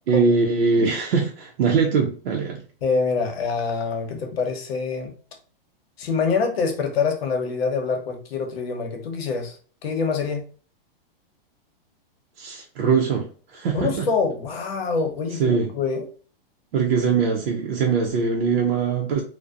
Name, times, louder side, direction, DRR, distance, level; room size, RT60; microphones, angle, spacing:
voice 1, 0.1-2.6 12.4-14.1 15.4-15.7 16.7-19.2, right 5 dB, 80° right, 0.6 m, -22 dB
voice 2, 2.8-5.1 6.0-9.6 9.8-10.5 13.7-16.0, left 5 dB, 85° left, 0.8 m, -25 dB
2.6 x 2.1 x 2.3 m
supercardioid pair, 180°, 30 cm